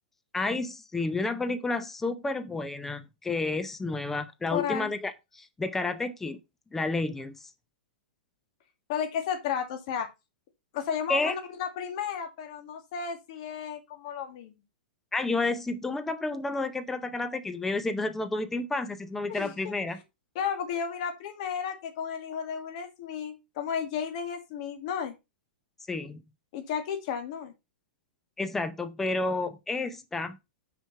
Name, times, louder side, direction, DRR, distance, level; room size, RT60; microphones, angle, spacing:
voice 1, 0.3-6.4 6.7-7.5 11.1-11.4 15.1-20.0 25.9-26.2 28.4-30.4, left 3 dB, 5° left, 0.6 m, -30 dB
voice 2, 4.5-4.9 8.9-10.1 10.7-14.6 19.3-19.7 20.4-25.1 26.5-27.5, left 7 dB, 45° left, 2.0 m, -33 dB
6.3 x 5.0 x 5.6 m
hypercardioid pair, 160°, 5 cm